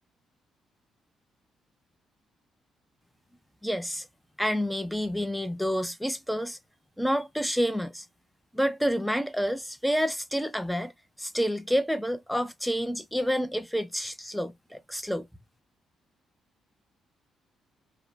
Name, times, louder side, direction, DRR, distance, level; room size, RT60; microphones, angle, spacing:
voice 1, 3.6-4.1 4.4-6.6 7.0-8.0 8.5-10.9 11.2-15.3, equal, ahead, 0.4 m, -28 dB
2.4 x 2.0 x 3.1 m
cardioid pair, 90°, 0 cm